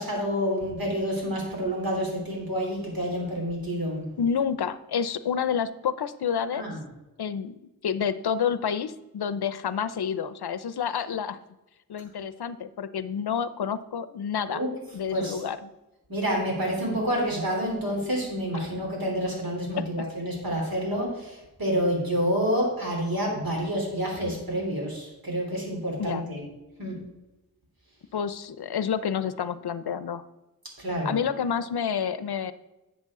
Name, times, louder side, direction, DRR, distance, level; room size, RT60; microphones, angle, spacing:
voice 1, 0.0-4.1 6.5-6.8 14.5-14.7 15.1-15.4 16.1-26.4 26.8-27.0 30.8-31.2, equal, 65° right, -2 dB, 3.4 m, -28 dB
voice 2, 4.2-6.7 7.2-11.4 11.9-14.6 14.9-15.7 19.8-19.9 26.0-26.3 28.1-30.2 31.0-32.5, left 7 dB, 85° left, 14 dB, 0.6 m, -29 dB
11.5 x 7.3 x 3.7 m, 1.0 s
wide cardioid pair, 85°, 38 cm